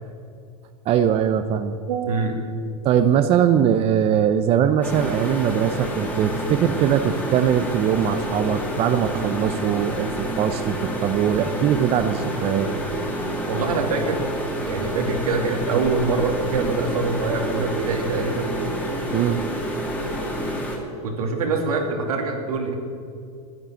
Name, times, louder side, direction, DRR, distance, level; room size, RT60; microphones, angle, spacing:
voice 1, 0.9-1.8 2.8-12.7 19.1-19.5, right 9 dB, 30° right, 9 dB, 0.7 m, -21 dB
voice 2, 1.9-2.4 13.5-14.3 14.7-18.5 21.0-22.7, right 4 dB, 85° right, 2 dB, 2.7 m, -24 dB
sound 1, 4.8-20.8, right 1 dB, 10° left, 2.2 m, -28 dB
11.0 x 9.8 x 9.0 m, 2.4 s
hypercardioid pair, 120°, 18 cm